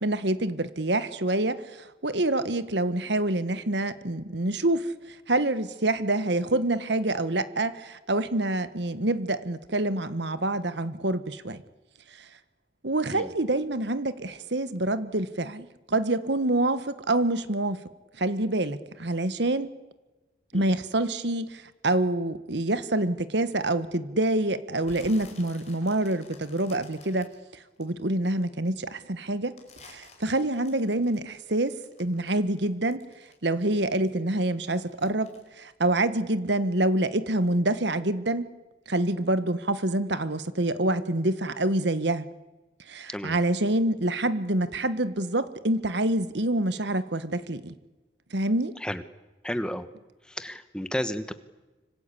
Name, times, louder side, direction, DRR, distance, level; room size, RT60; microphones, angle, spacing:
voice 1, 0.0-11.6 12.2-12.3 12.8-17.8 18.2-19.7 20.5-27.3 27.8-29.6 29.8-33.0 33.4-35.3 35.6-38.5 38.9-42.3 42.9-47.7 48.3-48.7, right 1 dB, 65° right, 13 dB, 1.4 m, -26 dB
sound 1, 24.8-28.4 28.8-33.6 33.9-36.6 36.9-37.3 37.7-37.8, left 4 dB, 35° left, 5.0 m, -52 dB
voice 2, 49.4-49.9 50.3-51.3, equal, 5° left, 11 dB, 1.1 m, -32 dB
25.5 x 25.5 x 8.5 m, 1.1 s
head